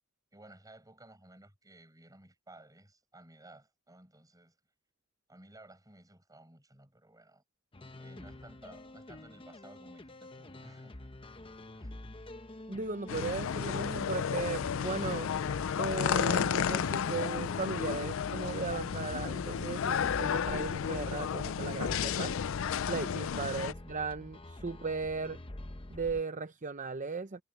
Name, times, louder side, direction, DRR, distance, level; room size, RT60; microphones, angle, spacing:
voice 1, 0.3-4.6 5.3-7.4 7.9-11.1 11.7-12.0 23.3-23.6, right 1 dB, 15° right, 8.0 m, -56 dB
sound 1, 7.7-26.2, left 1 dB, 25° left, 0.9 m, -47 dB
voice 2, 12.7-15.3 15.8-22.3 22.9-25.4 25.9-27.4, right 4 dB, 40° right, 0.7 m, -37 dB
sound 2, 13.1-23.7, left 7 dB, 70° left, 0.4 m, -32 dB
head